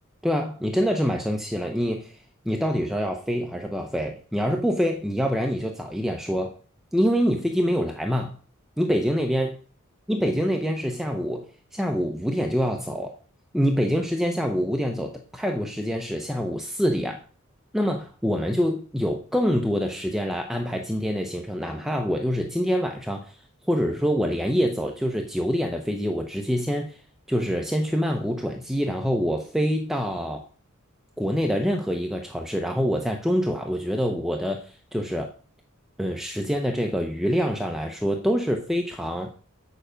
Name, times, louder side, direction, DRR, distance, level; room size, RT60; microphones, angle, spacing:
voice 1, 0.2-2.2 2.4-6.5 6.9-8.4 8.8-9.5 10.1-13.2 13.5-17.2 17.7-23.4 23.7-27.0 27.3-30.5 31.2-35.3 36.0-39.3, equal, ahead, 2 dB, 0.7 m, -25 dB
8.0 x 6.8 x 5.1 m, 0.40 s
head